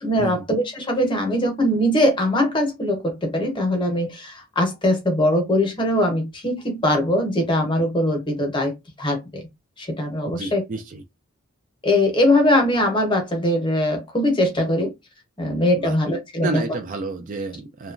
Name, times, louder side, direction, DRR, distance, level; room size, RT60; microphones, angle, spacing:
voice 1, 0.0-9.4 9.8-10.6 11.8-14.9 15.4-16.5, left 1 dB, 20° left, 0.8 m, -21 dB
voice 2, 10.3-11.0 15.8-16.0 16.4-17.9, right 3 dB, 35° right, 0.3 m, -30 dB
2.8 x 2.2 x 2.4 m
head